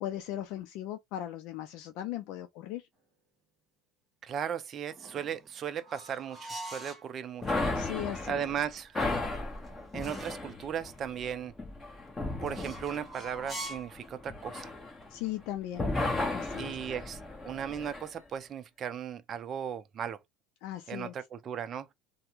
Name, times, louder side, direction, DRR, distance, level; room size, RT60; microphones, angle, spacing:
voice 1, 0.0-2.9 7.7-8.5 15.1-15.9 16.3-16.8 20.6-21.1, left 12 dB, 65° left, 0.4 m, -38 dB
voice 2, 4.2-7.6 8.3-9.0 9.9-11.5 12.4-14.7 16.6-17.2 17.4-20.2 20.9-21.9, right 8 dB, 35° right, 0.5 m, -36 dB
sound 1, 4.9-7.1 9.1-10.5 12.4-14.0, right 1 dB, 5° right, 1.6 m, -44 dB
sound 2, 7.4-15.4 15.7-18.1, left 2 dB, 15° left, 1.1 m, -35 dB
3.4 x 2.1 x 2.9 m
cardioid pair, 130°, 0 cm